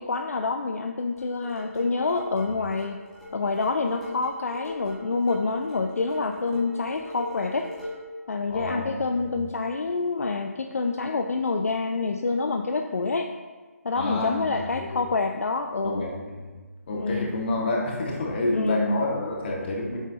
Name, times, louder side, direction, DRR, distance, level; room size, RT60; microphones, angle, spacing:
voice 1, 0.0-3.0 3.3-7.7 8.3-13.3 13.8-16.0 17.0-17.3 18.5-18.9, left 3 dB, 70° left, 5 dB, 0.6 m, -27 dB
sound 1, 1.2-8.1, left 2 dB, ahead, 1.9 m, -40 dB
voice 2, 8.5-8.9 9.2-9.4 13.9-15.1 15.8-16.5 16.9-20.0, left 2 dB, 40° left, -2 dB, 2.0 m, -28 dB
9.3 x 7.2 x 2.9 m, 1.4 s
figure-of-eight pair, 150°, 8 cm